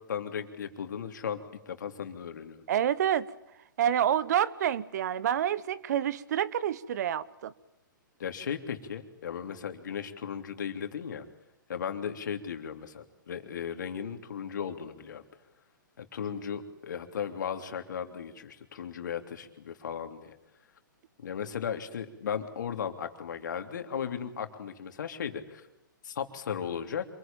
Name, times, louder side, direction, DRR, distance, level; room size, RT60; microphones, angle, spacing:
voice 1, 0.1-1.4 1.6-2.6 8.2-11.3 11.7-15.2 16.0-20.3 21.2-25.7 26.0-27.1, left 7 dB, 65° left, 3.3 m, -36 dB
voice 2, 2.7-3.3 3.8-7.5, right 10 dB, 55° right, 1.2 m, -28 dB
27.0 x 21.5 x 9.0 m
hypercardioid pair, 125°, 11 cm